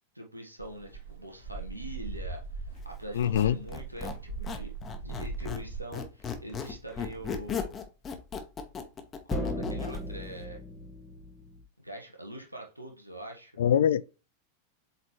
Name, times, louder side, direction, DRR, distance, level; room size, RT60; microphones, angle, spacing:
voice 1, 0.1-4.7 5.0-7.7 9.2-10.6 11.8-13.5, right 1 dB, 85° right, 1.3 m, -43 dB
sound 1, 0.6-5.8, right 4 dB, 65° right, 3.6 m, -40 dB
voice 2, 3.1-3.6 13.6-14.0, left 9 dB, 60° left, 0.4 m, -23 dB
Squeak, 3.1-5.7 5.9-10.0, left 6 dB, 25° left, 1.2 m, -37 dB
sound 2, 5.3-5.6 9.3-11.6, left 1 dB, 5° left, 1.4 m, -36 dB
8.1 x 4.0 x 3.1 m
figure-of-eight pair, 90°, 0 cm